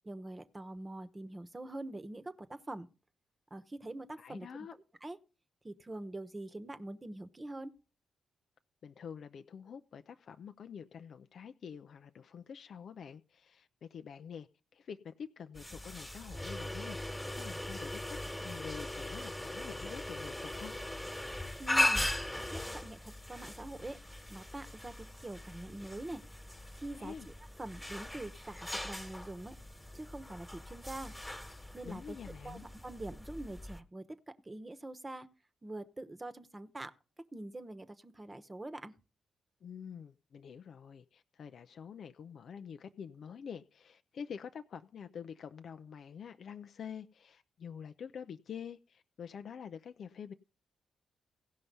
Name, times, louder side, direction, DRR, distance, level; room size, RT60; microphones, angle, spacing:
voice 1, 0.1-2.9 3.5-4.7 5.0-5.2 5.6-7.7 21.6-22.1 22.5-24.0 24.3-26.2 26.8-27.3 27.6-29.6 29.9-31.2 31.7-32.2 32.4-35.3 35.6-36.9 37.3-38.9, right 2 dB, 25° right, 1.1 m, -44 dB
voice 2, 4.2-4.8 8.8-20.7 26.9-27.3 31.8-32.6 39.6-50.3, left 7 dB, 60° left, 0.5 m, -47 dB
sound 1, 15.6-33.8, left 1 dB, 10° left, 1.5 m, -39 dB
16.5 x 5.6 x 5.3 m
hypercardioid pair, 40°, 0 cm